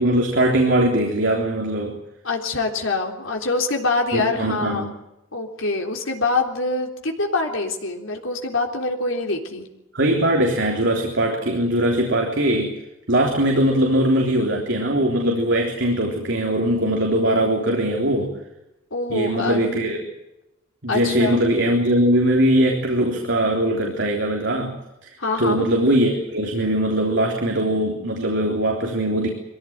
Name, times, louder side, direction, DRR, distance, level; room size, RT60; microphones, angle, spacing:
voice 1, 0.0-2.0 4.1-4.9 9.9-12.8 13.1-18.4 19.1-20.0 20.8-24.8 25.0-25.1 25.4-29.3, right 1 dB, 65° right, 1 dB, 3.7 m, -21 dB
voice 2, 2.2-4.9 5.3-9.7 18.9-19.6 20.9-21.4 25.2-25.7, left 3 dB, 75° left, 2 dB, 3.8 m, -25 dB
23.5 x 16.5 x 9.3 m, 0.92 s
head